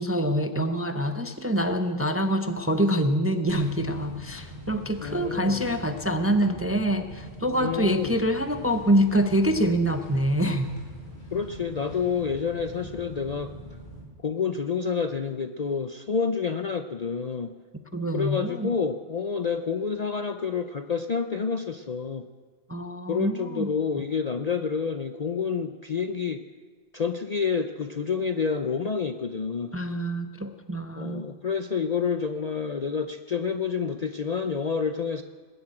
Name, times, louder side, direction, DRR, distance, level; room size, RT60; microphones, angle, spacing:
voice 1, 0.0-10.7 17.9-18.7 22.7-23.7 29.7-31.3, equal, 15° right, 8 dB, 0.6 m, -25 dB
sound 1, 3.5-14.1, equal, 20° left, 3.7 m, -42 dB
voice 2, 5.0-5.7 7.6-8.2 11.3-13.5 14.2-17.5 18.1-22.3 23.1-26.4 26.9-29.7 31.0-35.2, left 5 dB, 45° left, 8 dB, 0.5 m, -28 dB
20.0 x 8.0 x 8.9 m, 1.5 s
omnidirectional pair, 1.3 m